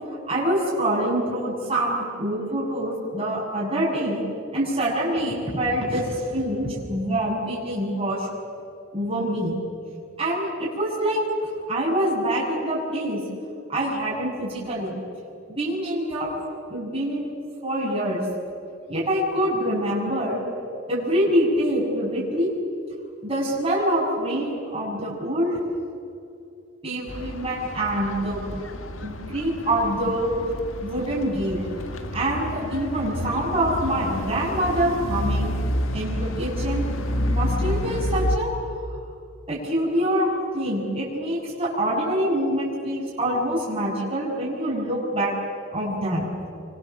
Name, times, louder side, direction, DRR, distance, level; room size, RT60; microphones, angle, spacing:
voice 1, 0.3-4.2 4.5-8.3 8.9-9.6 10.2-11.2 11.7-13.2 13.7-15.0 15.5-16.3 16.7-17.3 17.6-18.2 18.9-20.4 20.9-22.5 23.2-25.6 26.8-28.5 29.0-30.3 30.8-31.6 32.1-35.5 35.9-36.9 37.2-38.5 39.5-45.3 45.7-46.3, right 1 dB, 25° right, -6 dB, 6.9 m, -25 dB
sound 1, 27.1-38.4, left 1 dB, 70° left, 1.8 m, -29 dB
27.5 x 24.0 x 7.4 m, 2.5 s
head